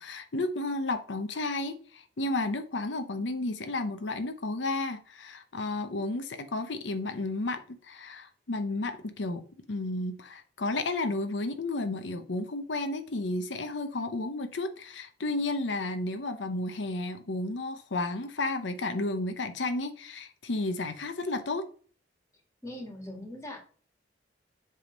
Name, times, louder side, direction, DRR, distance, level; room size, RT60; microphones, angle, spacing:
voice 1, 0.0-21.7, left 2 dB, 85° left, 0.8 m, -32 dB
voice 2, 22.6-23.6, left 1 dB, 15° left, 2.1 m, -40 dB
7.4 x 3.5 x 5.2 m
head